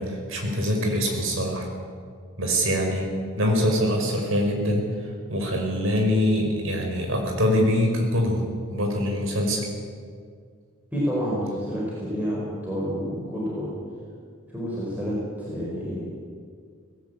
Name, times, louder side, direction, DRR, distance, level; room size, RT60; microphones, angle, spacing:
voice 1, 0.0-1.7 2.4-3.1 3.4-4.8 5.3-8.4 8.7-9.6, equal, 85° right, 2 dB, 5.2 m, -24 dB
voice 2, 10.9-13.7 14.5-16.1, equal, 10° right, -6 dB, 5.0 m, -29 dB
19.0 x 18.0 x 8.5 m, 2.1 s
head